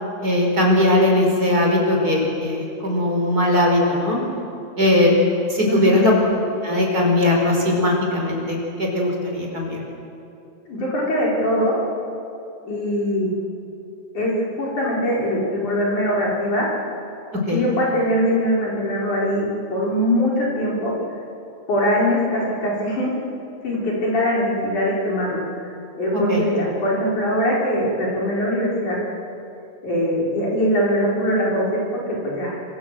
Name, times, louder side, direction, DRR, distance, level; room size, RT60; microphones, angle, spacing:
voice 1, 0.2-4.2 4.8-5.2 5.5-6.1 6.6-9.8 17.5-17.7 26.1-26.4, left 1 dB, 20° right, 0 dB, 4.9 m, -19 dB
voice 2, 5.7-6.1 10.7-11.8 12.7-13.3 14.1-16.7 17.5-20.9 21.7-23.1 23.6-25.4 26.0-29.0 29.8-32.8, equal, 45° left, -4 dB, 6.1 m, -22 dB
26.0 x 24.0 x 7.7 m, 2.7 s
omnidirectional pair, 5.1 m